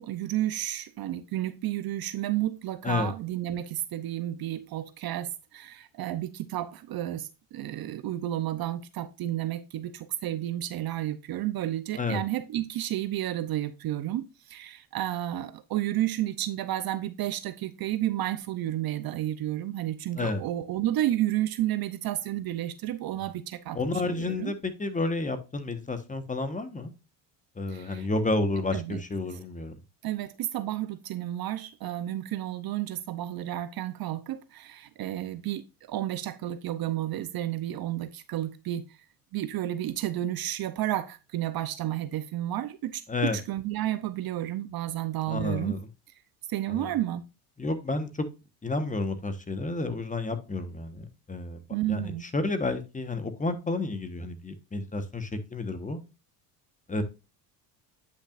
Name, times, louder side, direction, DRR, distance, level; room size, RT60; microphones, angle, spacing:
voice 1, 0.0-24.5 27.7-28.1 28.7-29.0 30.0-38.9 39.3-45.7 46.5-47.2 51.7-52.2, right 13 dB, 50° right, 0.7 m, -31 dB
voice 2, 23.7-26.9 27.6-29.8 43.1-43.4 45.3-45.9 46.7-46.9 47.6-48.3 48.6-51.6 51.9-56.0 56.9-57.0, left 2 dB, 15° left, 1.2 m, -30 dB
9.8 x 6.0 x 2.5 m
supercardioid pair, 95°, 48 cm